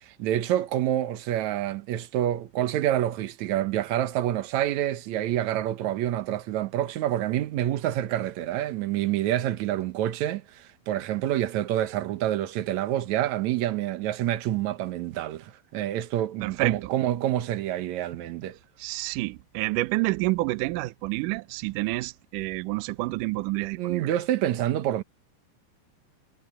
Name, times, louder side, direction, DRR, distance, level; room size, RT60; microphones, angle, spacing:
voice 1, 0.2-18.6 23.7-25.0, right 12 dB, 70° right, 1.8 m, -27 dB
voice 2, 16.4-16.8 18.8-24.1, right 21 dB, 90° right, 1.8 m, -28 dB
omnidirectional pair, 4.6 m